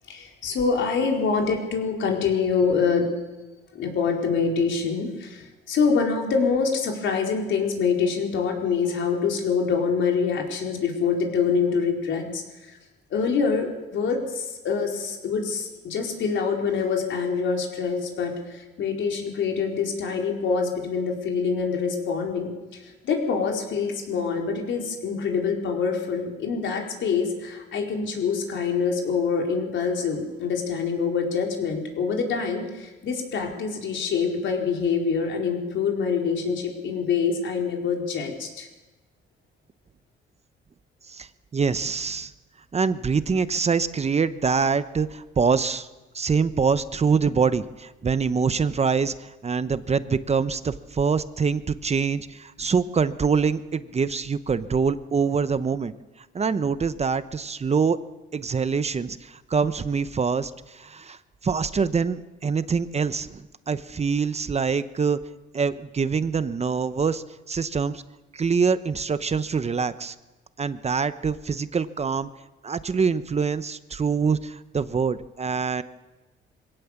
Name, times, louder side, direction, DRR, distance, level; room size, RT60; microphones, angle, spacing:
voice 1, 0.1-3.1 3.7-12.7 13.1-38.7, left 5 dB, 70° left, 1 dB, 4.6 m, -25 dB
voice 2, 41.1-42.3 42.7-45.9 46.1-55.9 56.3-58.0 58.3-65.2 65.5-68.0 68.3-70.1 70.6-72.3 72.6-75.8, right 5 dB, 35° right, 13 dB, 1.0 m, -25 dB
22.5 x 17.0 x 7.3 m, 1.1 s
cardioid pair, 90°, 20 cm